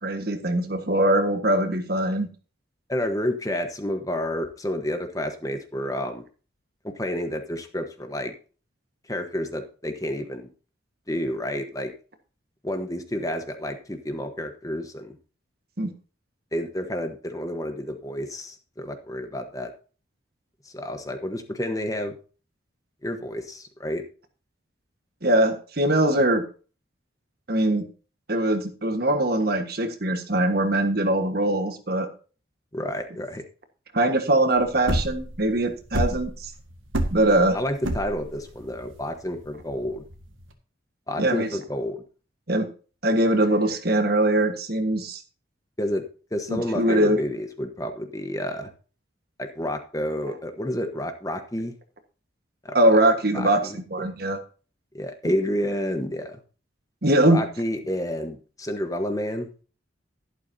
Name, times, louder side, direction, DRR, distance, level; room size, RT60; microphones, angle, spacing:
voice 1, 0.0-2.3 15.8-15.9 25.2-26.4 27.5-27.9 28.3-32.1 33.9-36.5 37.1-37.6 41.2-41.5 42.5-42.7 43.0-45.2 46.5-47.2 52.7-54.4 57.0-57.4, right 1 dB, 50° right, 7 dB, 1.5 m, -22 dB
voice 2, 2.9-6.2 6.8-8.3 9.1-10.5 11.1-11.9 12.6-15.2 16.5-19.7 20.7-22.1 23.0-24.0 32.7-33.4 37.5-40.0 41.1-42.0 45.8-46.1 46.3-48.7 49.4-51.7 52.6-52.8 53.3-53.8 54.9-56.4 57.3-59.5, left 1 dB, 15° left, 6 dB, 1.2 m, -30 dB
sound 1, 34.6-40.5, right 1 dB, 85° right, 1.8 m, -28 dB
12.0 x 11.5 x 2.8 m, 0.36 s
head